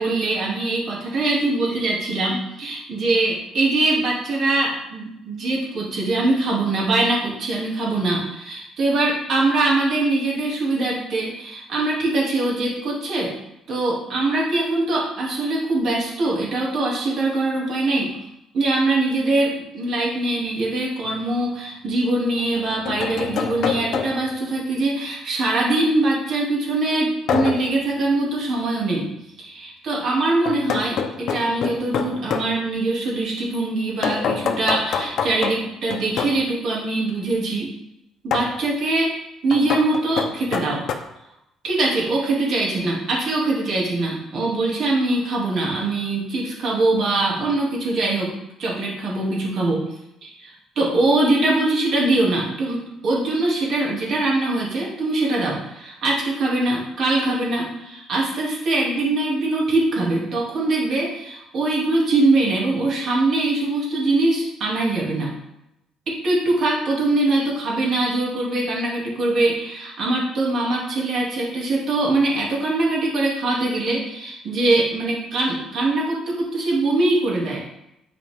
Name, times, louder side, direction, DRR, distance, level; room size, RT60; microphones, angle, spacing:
voice 1, 0.0-13.3 13.7-18.1 18.5-29.1 29.4-37.7 38.2-40.8 41.6-48.3 48.6-49.8 50.2-65.3 66.1-77.6, right 2 dB, 50° right, -3 dB, 2.6 m, -22 dB
sound 1, 21.0-21.2 22.4-24.4 27.3-27.8 30.5-32.5 34.0-36.4 38.3-38.6 39.5-40.9, left 7 dB, 60° left, 0.9 m, -26 dB
11.0 x 4.8 x 3.7 m, 0.84 s
cardioid pair, 145°, 0 cm